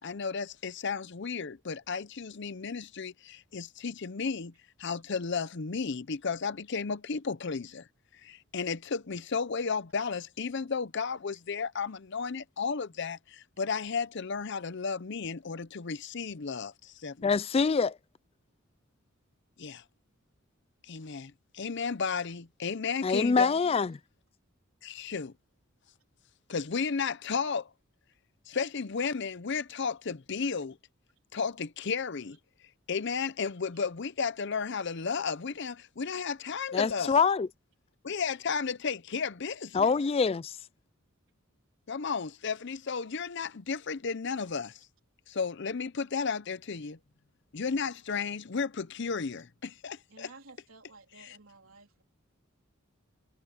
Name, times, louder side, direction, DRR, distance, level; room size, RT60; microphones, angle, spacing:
voice 1, 0.0-4.5 4.8-17.3 19.6-19.8 20.8-23.5 24.8-25.3 26.5-27.7 28.5-30.8 31.3-32.4 32.9-37.2 38.0-39.9 41.9-44.9 45.3-47.0 47.5-50.3, left 5 dB, 55° left, 0.7 m, -33 dB
voice 2, 17.2-18.0 23.0-24.0 36.7-37.5 39.7-40.6, left 5 dB, 30° left, 0.3 m, -25 dB
voice 3, 23.6-24.0 40.0-40.1 44.6-44.7 49.0-49.4 50.1-52.0, right 3 dB, 75° right, 3.7 m, -55 dB
head